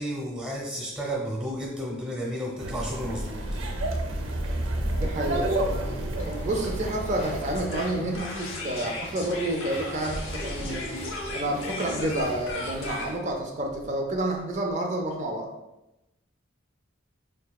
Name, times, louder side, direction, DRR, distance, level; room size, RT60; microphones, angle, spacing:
voice 1, 0.0-3.4, equal, 5° right, -2 dB, 0.8 m, -32 dB
sound 1, 2.6-7.7, right 1 dB, 85° right, 0.6 m, -30 dB
voice 2, 5.0-5.9 6.2-10.9 11.3-15.5, right 1 dB, 35° right, 2 dB, 0.4 m, -29 dB
sound 2, 6.2-13.1, left 1 dB, 30° left, 0.5 m, -43 dB
sound 3, 7.5-14.7, left 2 dB, 80° left, 0.7 m, -36 dB
4.4 x 2.6 x 2.2 m, 0.94 s
head